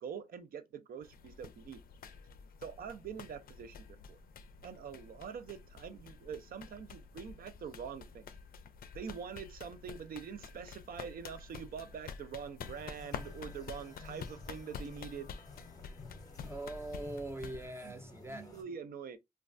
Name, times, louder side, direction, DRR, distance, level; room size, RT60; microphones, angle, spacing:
voice 1, 0.0-1.8 2.6-3.8 4.1-4.2 4.6-8.3 8.9-15.3 17.8-17.9 18.3-19.2, right 7 dB, 80° right, 0.4 m, -44 dB
sound 1, 1.0-17.7, left 6 dB, 85° left, 0.4 m, -49 dB
sound 2, 12.7-18.6, left 3 dB, 25° left, 0.7 m, -53 dB
voice 2, 16.4-18.5, right 2 dB, 15° right, 0.4 m, -42 dB
3.1 x 2.2 x 2.4 m
wide cardioid pair, 130°, 15 cm